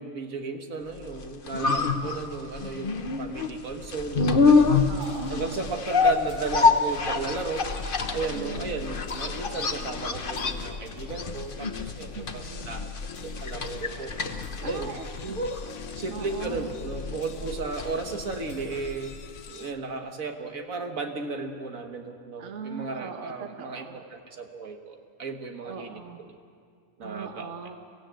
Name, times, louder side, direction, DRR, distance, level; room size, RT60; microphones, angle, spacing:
voice 1, 0.0-4.8 5.3-7.6 8.1-12.9 13.2-14.1 14.6-14.9 15.2-15.5 16.0-19.1 19.5-26.0 26.3-26.4 27.0-27.5, right 4 dB, 75° right, 4 dB, 1.9 m, -34 dB
sound 1, 1.1-19.1 19.4-19.5, left 4 dB, 40° left, 1.2 m, -27 dB
voice 2, 2.0-2.5 4.9-5.6 8.3-8.9 12.1-12.9 14.6-15.4 16.1-16.7 22.4-24.1 25.6-26.3 27.0-27.8, right 6 dB, 55° right, 5 dB, 1.5 m, -40 dB
sound 2, 4.4-19.7, left 5 dB, 60° left, 1.3 m, -41 dB
23.5 x 15.5 x 9.0 m, 2.2 s
omnidirectional pair, 1.5 m